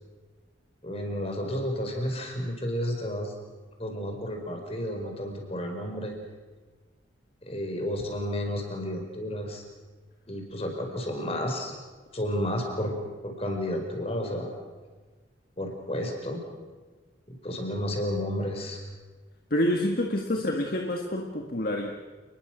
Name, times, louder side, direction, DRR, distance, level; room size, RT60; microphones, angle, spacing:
voice 1, 0.8-3.3 3.8-6.1 7.4-9.6 10.3-11.7 12.1-13.0 13.2-14.5 15.6-16.4 17.3-18.8 20.3-20.4, equal, 30° left, 3 dB, 5.0 m, -31 dB
voice 2, 19.5-21.9, left 1 dB, 50° left, 2 dB, 1.8 m, -27 dB
29.5 x 21.0 x 6.3 m, 1.3 s
head